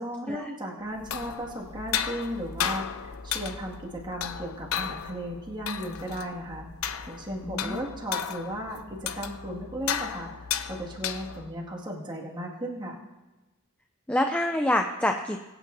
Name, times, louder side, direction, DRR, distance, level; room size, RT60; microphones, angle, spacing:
voice 1, 0.0-6.7 7.1-13.0, equal, 20° right, -3 dB, 2.1 m, -36 dB
sound 1, 0.9-11.6, left 8 dB, 85° left, 0.6 m, -34 dB
voice 2, 7.5-7.8 14.1-15.5, left 1 dB, 5° left, 4 dB, 0.5 m, -26 dB
21.5 x 9.3 x 2.7 m, 1.1 s
head